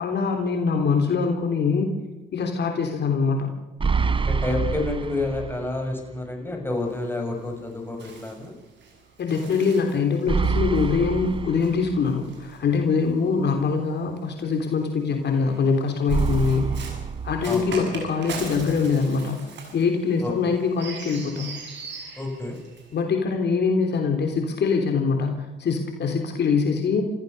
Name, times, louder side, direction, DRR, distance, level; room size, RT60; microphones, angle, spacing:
voice 1, 0.0-1.9 2.3-3.5 9.2-16.7 17.2-19.4 19.7-21.6 22.9-27.1, left 5 dB, 60° left, 3 dB, 3.4 m, -23 dB
sound 1, 3.8-5.8 6.2-6.3 10.3-12.3 16.1-18.1, right 5 dB, 25° right, 1.0 m, -26 dB
voice 2, 4.2-8.5 17.4-18.1 20.2-20.6 22.2-22.6, left 2 dB, 10° left, 3 dB, 6.5 m, -29 dB
Bird, 6.8-13.3 14.2-23.0, right 4 dB, 65° right, 7.0 m, -41 dB
28.0 x 15.5 x 6.8 m, 1.2 s
cardioid pair, 90°, 20 cm